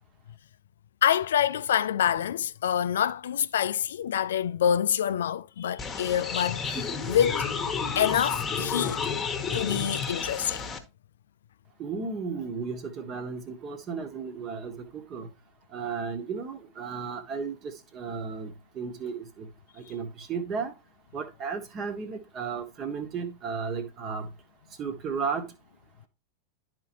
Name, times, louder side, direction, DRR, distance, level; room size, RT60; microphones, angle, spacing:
voice 1, 1.0-7.6 8.0-9.0 9.5-10.7, left 9 dB, 60° left, 0.4 m, -26 dB
sound 1, 5.8-10.8, left 5 dB, 15° left, 1.2 m, -31 dB
voice 2, 11.8-15.3 15.7-19.5 19.8-20.7 21.1-24.3 24.8-25.5, right 5 dB, 30° right, 1.3 m, -34 dB
11.5 x 4.6 x 2.9 m
figure-of-eight pair, 90°, 0 cm